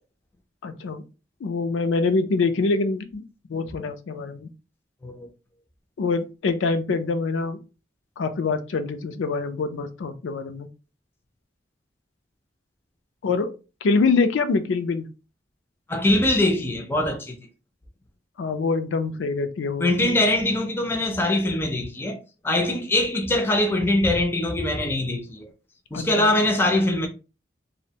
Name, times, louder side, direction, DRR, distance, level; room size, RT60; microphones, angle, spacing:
voice 1, 0.6-1.0 1.4-3.2 3.5-4.5 6.0-7.6 8.2-10.7 13.2-13.5 13.8-15.1 18.4-20.1 25.9-26.3, left 4 dB, 85° left, 0.4 m, -25 dB
voice 2, 15.9-17.4 19.8-25.5 25.9-27.1, left 1 dB, 10° left, 0.4 m, -22 dB
2.5 x 2.1 x 2.7 m
head